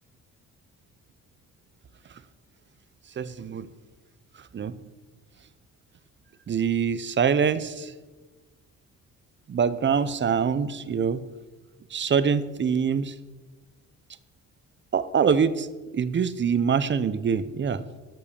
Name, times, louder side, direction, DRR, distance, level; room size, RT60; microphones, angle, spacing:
voice 1, 3.2-3.7 4.5-4.7 6.5-7.9 9.5-11.2 11.9-13.1 14.9-15.7 15.9-17.8, right 6 dB, 40° right, 14 dB, 0.8 m, -24 dB
12.5 x 5.4 x 7.0 m, 1.2 s
cardioid pair, 90°, 30 cm